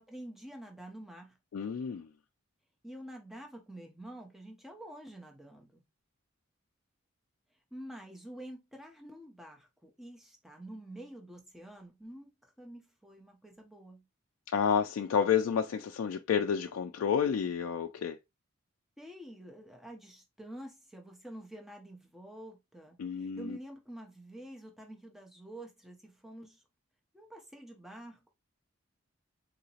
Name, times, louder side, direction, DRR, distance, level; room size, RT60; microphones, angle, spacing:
voice 1, 0.0-1.4 2.8-5.8 7.7-14.0 19.0-26.6 27.1-28.3, right 1 dB, ahead, 0.6 m, -48 dB
voice 2, 1.5-2.1 14.5-18.2 23.0-23.6, left 7 dB, 75° left, 0.3 m, -30 dB
3.8 x 2.8 x 2.8 m
head